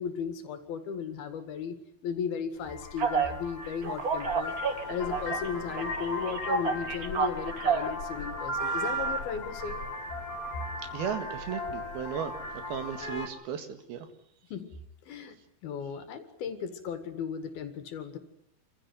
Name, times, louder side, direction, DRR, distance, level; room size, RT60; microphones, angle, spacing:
voice 1, 0.0-1.8 2.0-4.6 4.9-9.8 14.5-14.7 15.0-15.4 15.6-18.2, left 7 dB, 80° left, 9 dB, 3.9 m, -36 dB
Vehicle horn car horn honking, 2.6-13.3, left 2 dB, 40° left, 4.6 m, -38 dB
Telephone, 3.0-3.3 3.8-5.5 5.8-7.9 8.5-9.2, right 6 dB, 55° right, 1.0 m, -29 dB
voice 2, 10.9-12.3 12.7-14.1, right 8 dB, 90° right, 8 dB, 3.8 m, -35 dB
26.5 x 15.5 x 9.7 m, 0.78 s
omnidirectional pair, 4.2 m